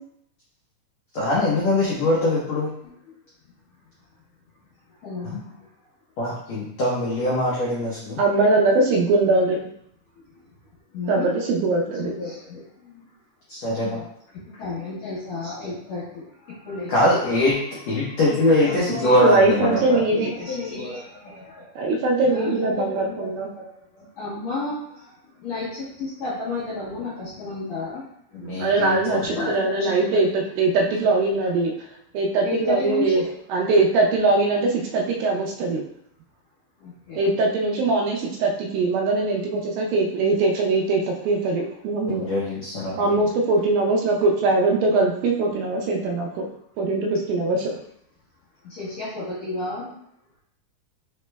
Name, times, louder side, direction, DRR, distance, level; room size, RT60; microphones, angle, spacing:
voice 1, 1.1-2.7 5.2-5.4 6.2-8.2 13.5-14.0 16.9-17.6 17.8-20.0 28.3-29.5 42.1-43.2, left 1 dB, 90° left, -7 dB, 1.5 m, -22 dB
voice 2, 5.0-5.6 10.3-10.5 10.9-11.3 12.0-13.0 14.4-17.2 18.0-18.2 18.6-19.2 19.6-19.7 20.1-21.7 22.2-23.6 23.9-28.1 29.2-30.2 32.4-33.3 36.8-37.3 48.6-49.9, left 3 dB, 65° left, -9 dB, 1.7 m, -32 dB
voice 3, 8.2-9.6 11.1-12.1 18.9-20.3 21.8-23.5 28.6-31.7 32.1-33.2 33.5-35.8 37.2-42.3 43.0-46.5 46.8-47.8, right 3 dB, 80° right, 0 dB, 2.2 m, -21 dB
5.7 x 3.1 x 2.2 m, 0.70 s
omnidirectional pair, 4.4 m